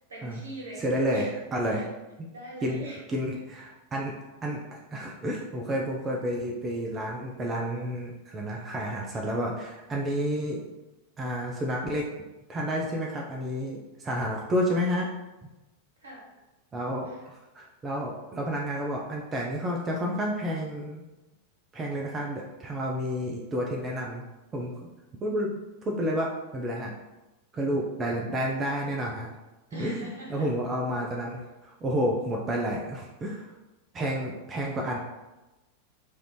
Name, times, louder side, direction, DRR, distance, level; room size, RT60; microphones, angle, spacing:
voice 1, 0.1-0.8 1.1-1.3 1.7-1.8 2.3-3.0 16.0-16.3 17.0-17.2 29.7-30.5, right 1 dB, 70° right, -4 dB, 1.0 m, -42 dB
voice 2, 0.8-1.9 2.6-4.1 4.4-10.6 11.2-12.1 12.5-15.1 16.7-21.0 21.7-24.3 24.5-24.8 25.2-25.5 25.8-26.9 27.5-29.3 29.7-33.5 33.9-35.0, equal, 20° right, -1 dB, 0.4 m, -30 dB
3.1 x 2.5 x 3.1 m, 1.0 s
figure-of-eight pair, 90°, 0 cm